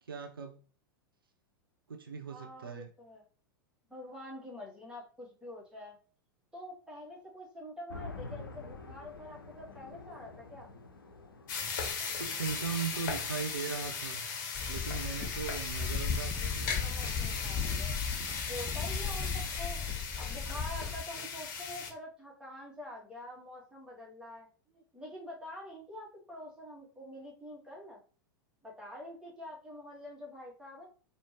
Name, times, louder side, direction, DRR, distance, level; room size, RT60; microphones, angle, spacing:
voice 1, 0.0-0.6 1.9-2.9 12.0-14.2 14.7-16.7 19.3-19.4, right 6 dB, 75° right, 5 dB, 0.5 m, -39 dB
voice 2, 2.3-3.2 3.9-6.0 6.5-10.7 16.8-17.9 18.5-28.0 28.6-30.9, left 1 dB, 5° right, -3 dB, 1.7 m, -46 dB
sound 1, 7.9-16.6, left 3 dB, 75° left, 0.7 m, -50 dB
sound 2, 11.5-21.9, left 5 dB, 55° left, 1.1 m, -37 dB
sound 3, 14.5-21.0, left 6 dB, 20° left, 0.8 m, -36 dB
4.3 x 2.7 x 3.0 m, 0.39 s
figure-of-eight pair, 90°, 12 cm